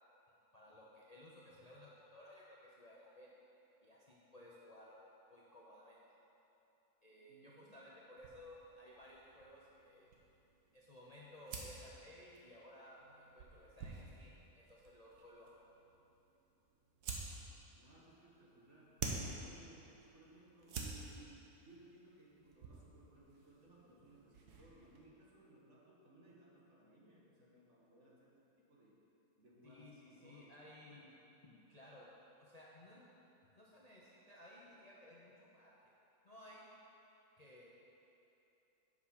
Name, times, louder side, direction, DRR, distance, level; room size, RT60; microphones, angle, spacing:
voice 1, 0.3-3.3 3.8-5.0 5.3-6.0 7.0-10.1 10.7-15.5 29.6-31.1 31.4-32.1 32.4-33.0 33.6-35.7 36.2-36.6 37.4-37.7, left 1 dB, 35° left, -6 dB, 0.7 m, -58 dB
voice 2, 7.3-7.9 17.7-29.0 29.4-31.1, right 2 dB, 50° right, -5 dB, 1.8 m, -63 dB
sound 1, 8.2-25.0, right 4 dB, 85° right, 1.5 m, -51 dB
8.2 x 6.1 x 5.8 m, 3.0 s
omnidirectional pair, 1.6 m